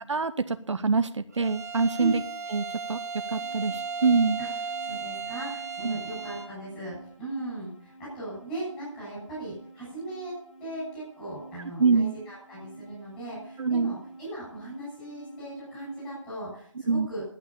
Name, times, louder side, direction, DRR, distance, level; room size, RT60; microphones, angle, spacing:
voice 1, 0.0-2.2 2.5-3.0 3.3-4.4 5.8-6.0 11.8-12.1 13.6-13.9 16.9-17.1, right 4 dB, 65° right, 10 dB, 0.9 m, -25 dB
Bowed string instrument, 1.3-6.6, right 5 dB, 30° right, 1.2 m, -35 dB
sound 1, 3.3-16.2, right 2 dB, 45° left, 7.4 m, -49 dB
voice 2, 4.8-17.2, right 2 dB, 10° left, -8 dB, 7.3 m, -38 dB
11.5 x 9.2 x 8.5 m, 0.62 s
hypercardioid pair, 175°, 16 cm